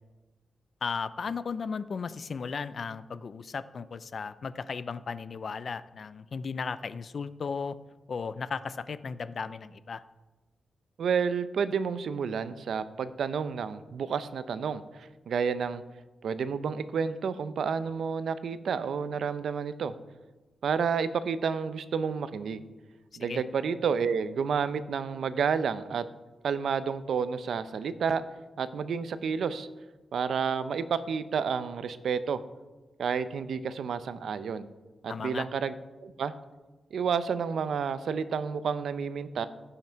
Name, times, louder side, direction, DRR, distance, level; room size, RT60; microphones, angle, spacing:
voice 1, 0.8-7.8 8.1-10.0 23.2-23.4 35.1-35.5, left 5 dB, 50° left, 15 dB, 0.4 m, -35 dB
voice 2, 11.0-15.8 16.2-19.9 20.6-22.7 23.2-26.0 26.4-28.2 28.6-29.7 30.1-32.4 33.0-34.7 35.0-35.7 36.0-36.3 36.9-39.5, right 6 dB, 80° right, 13 dB, 0.5 m, -30 dB
15.5 x 5.8 x 4.5 m, 1.2 s
wide cardioid pair, 120°, 0 cm